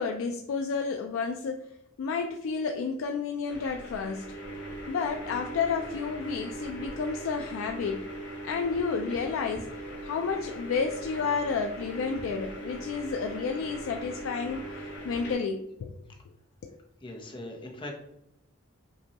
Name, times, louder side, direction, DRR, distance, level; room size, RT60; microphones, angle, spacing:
voice 1, 0.0-1.7 2.0-4.2 4.9-8.0 8.4-9.7 10.0-14.8 15.0-15.9 16.6-16.8, left 5 dB, 80° left, 4 dB, 0.3 m, -31 dB
sound 1, 3.5-15.3, right 1 dB, 60° left, 0.9 m, -40 dB
voice 2, 17.0-17.9, left 1 dB, 25° left, 2 dB, 0.6 m, -40 dB
5.4 x 2.2 x 2.8 m, 0.80 s
head